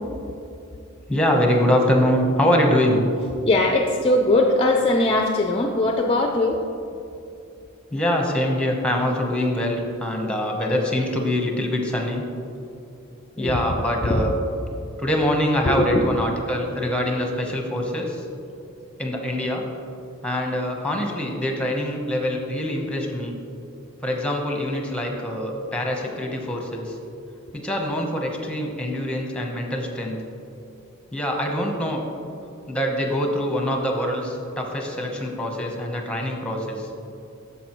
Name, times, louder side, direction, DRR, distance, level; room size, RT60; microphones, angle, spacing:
voice 1, 1.1-3.0 7.9-12.2 13.4-14.3 15.0-18.3 19.0-19.6 20.2-23.4 24.0-27.0 27.5-30.2 31.1-32.0 32.7-36.9, equal, 5° left, 1 dB, 0.9 m, -24 dB
voice 2, 3.5-6.6 13.4-13.6 14.0-14.2 15.6-16.1, left 2 dB, 25° left, 2 dB, 0.4 m, -20 dB
10.0 x 7.0 x 3.0 m, 2.7 s
head